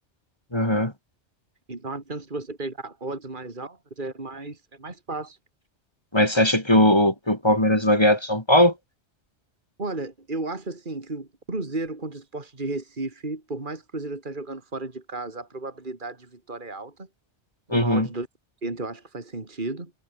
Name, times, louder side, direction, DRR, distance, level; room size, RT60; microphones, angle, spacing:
voice 1, 0.5-0.9 6.1-8.7 17.7-18.1, left 1 dB, 20° left, 2.9 m, -19 dB
voice 2, 1.7-5.4 9.8-17.1 17.7-18.3 18.6-19.9, right 2 dB, 45° right, 3.1 m, -34 dB
omnidirectional pair, 1.2 m